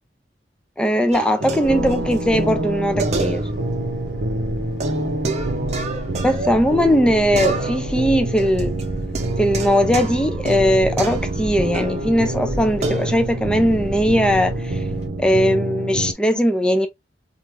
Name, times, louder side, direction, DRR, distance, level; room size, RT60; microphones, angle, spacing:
voice 1, 0.8-3.4 6.2-8.7 9.4-14.5 15.2-16.9, equal, 5° left, 0.4 m, -19 dB
sound 1, 1.1-2.2 2.5-2.6 3.0-4.1 4.8-7.0 7.4-8.0 8.4-12.1 12.8-13.1, right 4 dB, 40° right, 0.6 m, -30 dB
sound 2, 1.4-16.1, right 1 dB, 80° right, 0.7 m, -26 dB
sound 3, 1.6-15.1, equal, 60° left, 1.2 m, -34 dB
3.2 x 2.5 x 2.8 m
head